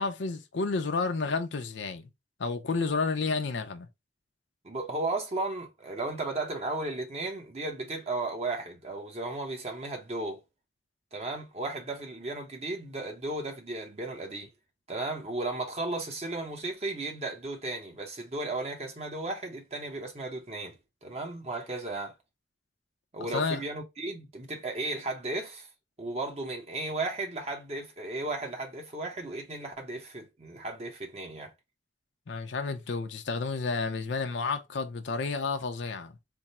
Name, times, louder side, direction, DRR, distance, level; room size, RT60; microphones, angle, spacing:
voice 1, 0.0-2.1 2.4-3.9 23.2-23.6 32.3-36.1, left 4 dB, 75° left, 0.6 m, -31 dB
voice 2, 4.6-10.4 11.1-14.5 14.9-20.7 21.0-22.1 23.1-25.7 26.0-31.5, right 2 dB, 35° right, 0.8 m, -35 dB
3.5 x 2.0 x 4.1 m
head